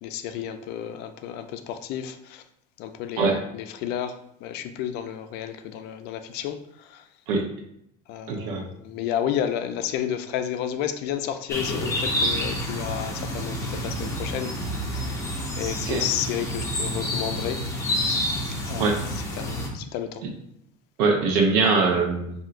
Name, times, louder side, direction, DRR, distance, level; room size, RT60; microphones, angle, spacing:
voice 1, 0.0-2.4 2.8-7.1 8.1-14.5 14.9-15.2 15.6-17.6 18.6-20.2, left 10 dB, 60° left, 8 dB, 0.4 m, -31 dB
voice 2, 8.3-8.6 15.9-16.0 18.8-19.0 21.0-22.3, right 4 dB, 80° right, 2 dB, 0.9 m, -22 dB
sound 1, 11.5-19.7, equal, 15° left, 0.9 m, -28 dB
5.6 x 2.7 x 2.5 m, 0.73 s
cardioid pair, 135°, 19 cm